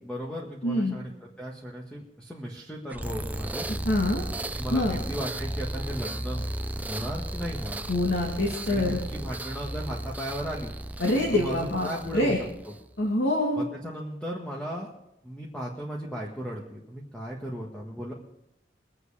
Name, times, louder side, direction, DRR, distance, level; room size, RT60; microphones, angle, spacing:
voice 1, 0.0-3.6 4.5-6.4 6.8-7.8 8.7-10.7 11.3-12.7 13.5-14.9 15.2-18.1, equal, 5° left, -3 dB, 1.7 m, -36 dB
voice 2, 0.6-1.0 3.8-4.2 4.7-5.0 7.9-9.0 11.0-11.9 12.1-12.4 13.0-13.6, left 1 dB, 75° left, -2 dB, 2.4 m, -25 dB
sound 1, 2.9-12.9, right 1 dB, 10° right, 0.5 m, -34 dB
23.5 x 8.1 x 5.0 m, 0.84 s
head